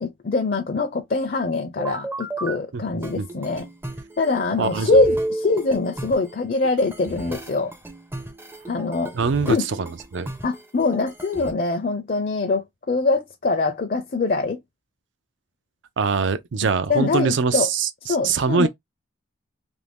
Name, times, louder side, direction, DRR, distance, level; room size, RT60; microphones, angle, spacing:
voice 1, 0.0-3.7 4.2-7.7 8.7-9.1 9.5-9.7 10.4-14.6 16.9-17.7 18.0-18.7, left 3 dB, 45° left, 0.4 m, -23 dB
sound 1, 1.8-2.6 3.0-11.5, right 1 dB, 10° right, 0.4 m, -31 dB
voice 2, 4.6-4.9 9.1-10.3 16.0-18.7, right 5 dB, 70° right, 0.4 m, -23 dB
2.8 x 2.6 x 3.4 m
head